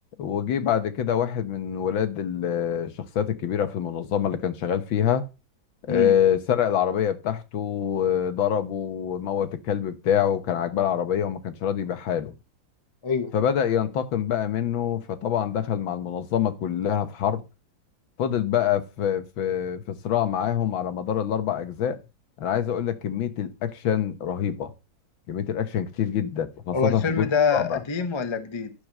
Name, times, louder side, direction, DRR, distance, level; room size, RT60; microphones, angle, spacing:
voice 1, 0.2-5.3 5.8-12.3 13.3-17.4 18.2-22.0 22.4-24.7 25.3-27.2 27.5-27.8, left 9 dB, 75° left, 1.8 m, -25 dB
voice 2, 26.7-28.7, left 5 dB, 30° left, 0.5 m, -25 dB
12.0 x 4.9 x 6.6 m
omnidirectional pair, 2.2 m